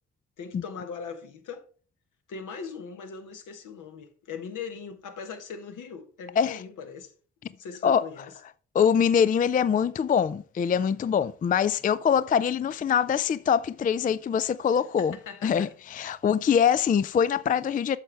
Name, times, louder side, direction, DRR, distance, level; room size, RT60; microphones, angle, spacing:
voice 1, 0.4-1.7 2.3-7.1 7.5-8.4 15.0-16.2, left 6 dB, 70° left, 1.4 m, -40 dB
voice 2, 8.7-15.1 15.4-18.0, left 7 dB, 25° left, 0.4 m, -23 dB
9.0 x 6.3 x 3.4 m
supercardioid pair, 55°, 32 cm